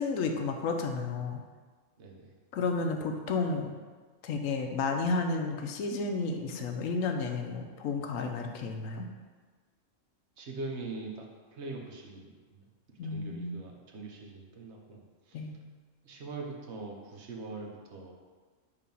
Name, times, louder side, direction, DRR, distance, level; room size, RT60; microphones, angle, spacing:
voice 1, 0.0-1.4 2.5-3.7 4.2-9.1 13.0-13.6 15.3-15.6, left 4 dB, 90° left, 4 dB, 1.1 m, -32 dB
voice 2, 2.0-2.3 10.4-12.7 13.0-15.5 16.0-18.1, right 3 dB, 60° right, 0 dB, 1.1 m, -42 dB
6.9 x 2.8 x 5.3 m, 1.4 s
omnidirectional pair, 1.3 m